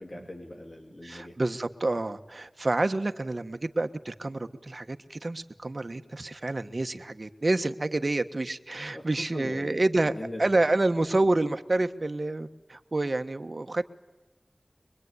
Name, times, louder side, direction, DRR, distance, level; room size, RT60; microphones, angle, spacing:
voice 1, 0.0-1.3 8.9-9.0 9.3-10.4, left 1 dB, 45° left, 1 dB, 3.3 m, -41 dB
voice 2, 1.0-10.1 10.4-13.9, right 2 dB, 60° right, 8 dB, 1.3 m, -28 dB
24.0 x 22.5 x 9.7 m, 1.2 s
wide cardioid pair, 60°, 0 cm